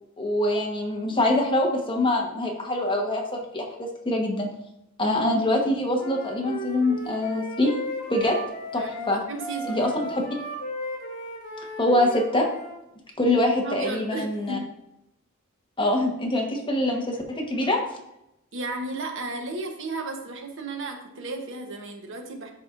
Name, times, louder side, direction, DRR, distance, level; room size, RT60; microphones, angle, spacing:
voice 1, 0.2-4.5 5.0-7.7 8.1-8.4 8.7-9.2 9.7-10.2 11.8-12.5 13.2-14.6 15.8-17.8, left 1 dB, 25° left, 0 dB, 1.1 m, -24 dB
Wind instrument woodwind instrument, 5.9-12.8, equal, 60° left, 2.2 m, -36 dB
voice 2, 8.7-9.9 13.6-14.6 18.5-22.5, right 2 dB, 65° right, 4 dB, 0.9 m, -34 dB
11.0 x 4.2 x 2.5 m, 0.84 s
head